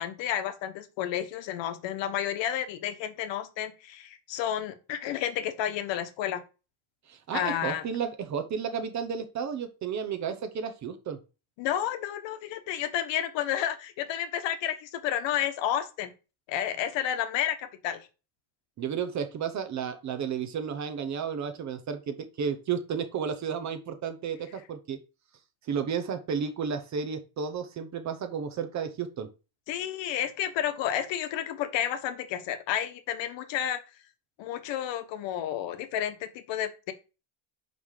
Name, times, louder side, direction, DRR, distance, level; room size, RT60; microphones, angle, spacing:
voice 1, 0.0-6.4 7.3-7.8 11.6-16.1 16.5-18.1 29.7-33.8 34.4-36.9, left 10 dB, 65° left, 10 dB, 1.2 m, -31 dB
voice 2, 7.1-11.2 18.8-25.0 25.7-29.3, right 7 dB, 35° right, 8 dB, 0.8 m, -32 dB
5.7 x 5.4 x 4.8 m, 0.31 s
cardioid pair, 170°, 48 cm